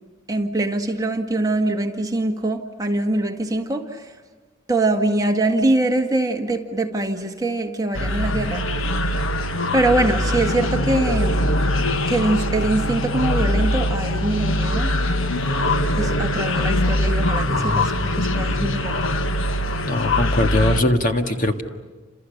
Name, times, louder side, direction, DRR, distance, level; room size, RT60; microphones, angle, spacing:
voice 1, 0.3-3.9 4.7-8.6 9.7-11.6 12.1-14.9 16.0-19.0, right 2 dB, 20° right, 3 dB, 1.8 m, -23 dB
sound 1, 7.9-20.8, left 1 dB, 70° left, 1.3 m, -22 dB
voice 2, 19.8-21.6, left 1 dB, 40° left, 5 dB, 1.8 m, -21 dB
29.5 x 27.5 x 6.6 m, 1.3 s
head